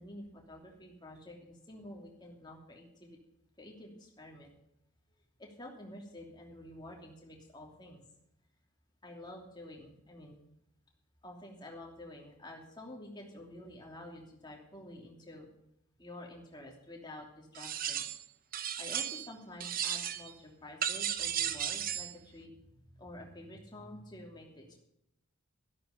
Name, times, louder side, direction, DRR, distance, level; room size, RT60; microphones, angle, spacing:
voice 1, 0.0-3.2 3.6-4.5 5.4-8.0 9.0-10.4 11.2-15.5 16.0-18.1 18.8-24.8, left 1 dB, 20° left, 0 dB, 2.9 m, -49 dB
sound 1, 17.5-18.2 18.5-19.3 19.6-20.3 20.8-22.1, right 9 dB, 40° right, 0.7 m, -35 dB
13.0 x 12.0 x 5.2 m, 0.78 s
head